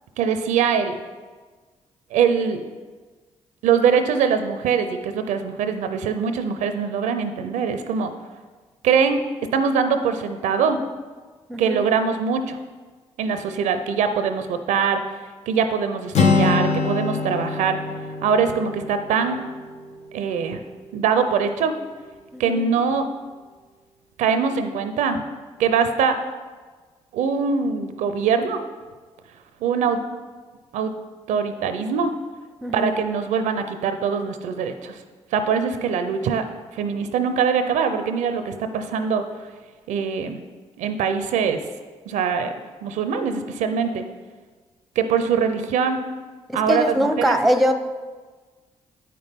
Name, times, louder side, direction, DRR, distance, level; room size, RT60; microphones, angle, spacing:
voice 1, 0.2-1.0 2.1-2.6 3.6-8.1 8.8-9.2 9.5-10.8 11.6-12.6 13.2-15.0 15.5-17.8 18.2-19.4 20.1-20.6 20.9-21.7 22.4-23.1 24.2-25.2 25.6-26.2 27.1-28.6 29.6-30.0 30.7-30.9 31.3-32.1 32.7-35.0 35.3-36.4 36.7-39.2 39.9-40.4 40.8-41.6 42.1-42.5 42.8-44.0 45.0-46.0 46.5-47.4, right 6 dB, 85° right, 9 dB, 0.5 m, -22 dB
voice 2, 11.5-11.9 22.3-22.7 32.6-33.0 46.5-47.7, equal, ahead, 8 dB, 0.7 m, -22 dB
Acoustic guitar, 16.1-20.1, left 4 dB, 65° left, 0.8 m, -24 dB
8.4 x 5.8 x 3.5 m, 1.4 s
supercardioid pair, 50°, 12 cm